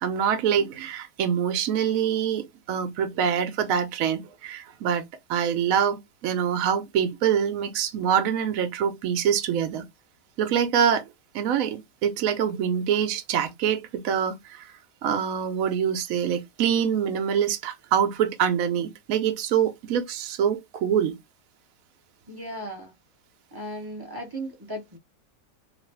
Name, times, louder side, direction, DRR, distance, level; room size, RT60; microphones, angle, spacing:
voice 1, 0.0-5.0 5.3-9.8 10.4-11.0 11.3-14.7 15.0-21.1, right 8 dB, 65° right, 0.9 m, -25 dB
voice 2, 22.3-22.9 23.5-25.0, right 1 dB, 25° right, 0.5 m, -36 dB
3.0 x 2.5 x 3.2 m
omnidirectional pair, 1.9 m